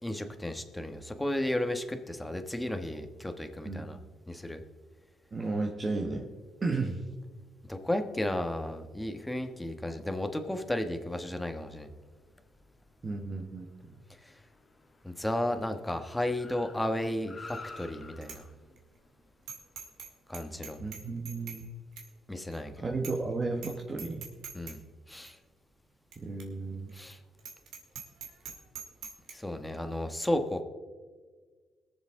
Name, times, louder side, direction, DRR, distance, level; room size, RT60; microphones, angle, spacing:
voice 1, 0.0-4.0 4.3-4.6 7.7-11.9 14.2-14.4 15.0-18.4 20.3-20.8 22.3-22.9 24.5-24.8 25.1-25.4 26.9-27.2 29.3-30.6, left 1 dB, 10° left, 6 dB, 1.3 m, -33 dB
voice 2, 5.3-6.3 6.6-7.0 13.0-13.7 20.8-21.7 22.8-24.3 26.2-26.9, right 3 dB, 35° right, 1 dB, 1.3 m, -33 dB
Car, 11.6-21.0, left 3 dB, 30° left, 1.5 m, -53 dB
Bicycle bell, 17.5-17.8 18.2-18.4 18.8-18.9 19.5-20.1 20.3-21.6 22.0-22.1 22.5-22.6 23.0-23.3 23.6-23.7 24.0-24.8 25.2-25.3 26.1-26.2 26.4-26.5 26.9-27.0 27.4-29.3, right 7 dB, 80° right, 2.0 m, -43 dB
22.0 x 7.4 x 3.8 m, 1.5 s
cardioid pair, 90°, 0 cm